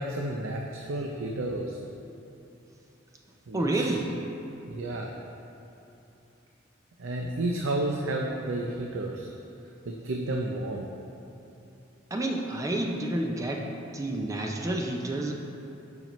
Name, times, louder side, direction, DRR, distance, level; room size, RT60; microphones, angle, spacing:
voice 1, 0.0-1.7 3.5-3.9 4.5-5.1 7.0-9.3 9.9-10.9, right 1 dB, 90° right, 0 dB, 0.5 m, -31 dB
voice 2, 3.5-4.1 12.1-15.3, right 1 dB, 15° right, 1 dB, 0.4 m, -29 dB
9.0 x 5.8 x 3.0 m, 2.9 s
head